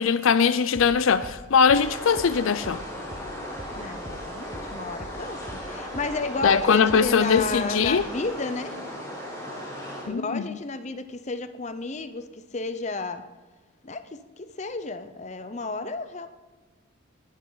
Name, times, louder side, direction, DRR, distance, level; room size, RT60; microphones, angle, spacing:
voice 1, 0.0-2.8 6.4-8.1 10.1-10.4, left 6 dB, 75° left, 0.5 m, -21 dB
sound 1, 0.7-5.7 5.9-8.2, right 1 dB, 30° right, 1.0 m, -42 dB
sound 2, 1.8-10.1, equal, 15° left, 3.7 m, -37 dB
voice 2, 3.8-8.8 10.0-13.2 13.8-16.3, left 3 dB, 35° left, 0.7 m, -32 dB
19.0 x 12.0 x 4.0 m
head